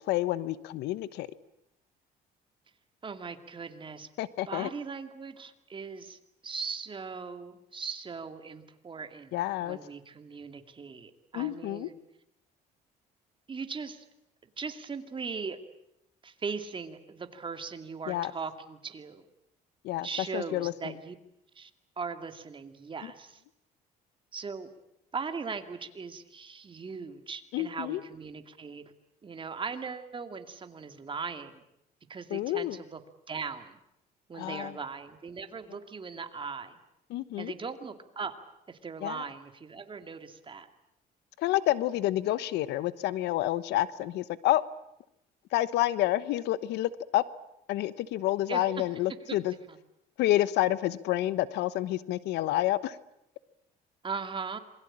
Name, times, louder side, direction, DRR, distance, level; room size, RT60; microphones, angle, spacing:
voice 1, 0.1-1.3 4.2-4.7 9.3-9.8 11.3-11.9 18.1-18.3 19.8-20.1 20.3-20.7 27.5-28.0 32.3-32.8 34.3-34.7 37.1-37.5 39.0-39.2 41.4-44.6 45.5-47.2 47.7-49.5 50.2-52.9, left 15 dB, 85° left, 16 dB, 1.1 m, -29 dB
voice 2, 3.0-4.1 4.5-11.9 13.5-14.0 14.6-15.6 16.2-19.2 20.0-21.1 21.6-21.7 22.0-23.4 24.3-24.7 25.1-28.8 29.2-31.6 32.1-33.0 33.3-33.8 34.3-36.8 37.4-38.4 38.7-40.7 48.5-48.6 49.3-49.8 54.0-54.6, right 5 dB, 30° right, 7 dB, 2.5 m, -39 dB
27.0 x 22.5 x 8.8 m, 0.82 s
cardioid pair, 110°, 17 cm